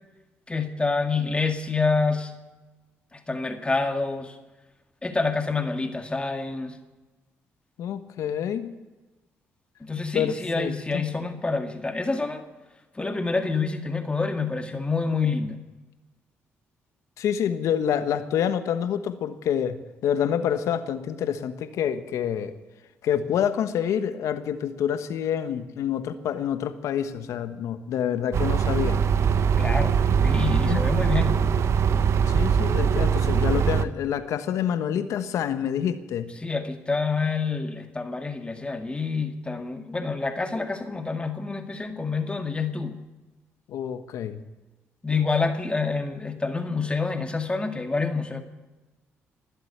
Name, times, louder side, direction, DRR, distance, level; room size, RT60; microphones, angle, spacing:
voice 1, 0.5-2.3 3.1-4.4 5.0-6.8 9.8-12.5 12.9-15.6 29.6-31.4 36.4-43.0 45.0-48.4, left 4 dB, 20° left, 5 dB, 2.0 m, -27 dB
voice 2, 7.8-8.7 10.1-11.0 17.2-22.5 23.0-29.0 30.5-30.9 32.3-36.3 43.7-44.4, left 9 dB, 80° left, 10 dB, 1.3 m, -27 dB
sound 1, 28.3-33.9, right 7 dB, 60° right, 0.9 m, -22 dB
22.0 x 8.0 x 8.0 m, 1.2 s
cardioid pair, 70°, 5 cm